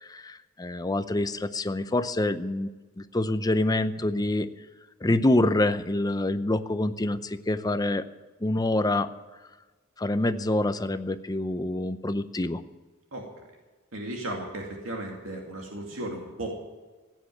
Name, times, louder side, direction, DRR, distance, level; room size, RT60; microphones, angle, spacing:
voice 1, 0.1-2.7 3.1-4.5 5.0-8.0 8.4-9.1 10.0-12.6, left 1 dB, 20° left, 11 dB, 0.7 m, -26 dB
voice 2, 13.1-13.4 13.9-16.5, right 1 dB, 85° right, 0 dB, 2.4 m, -35 dB
16.0 x 9.3 x 7.7 m, 1.3 s
head